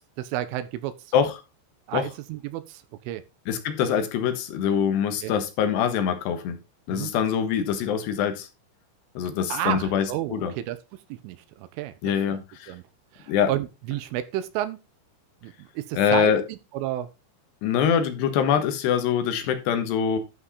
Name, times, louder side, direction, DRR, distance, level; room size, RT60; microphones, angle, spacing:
voice 1, 0.2-1.0 1.9-3.2 5.2-5.3 6.9-7.1 9.5-10.8 11.1-11.9 12.3-12.8 13.1-14.8 15.4-17.1, right 13 dB, 90° right, 3.4 m, -31 dB
voice 2, 3.5-6.6 6.9-8.5 9.2-10.5 12.0-12.7 13.3-13.5 15.9-16.4 17.6-20.2, left 8 dB, 70° left, 3.1 m, -24 dB
11.5 x 5.3 x 4.1 m
omnidirectional pair, 5.7 m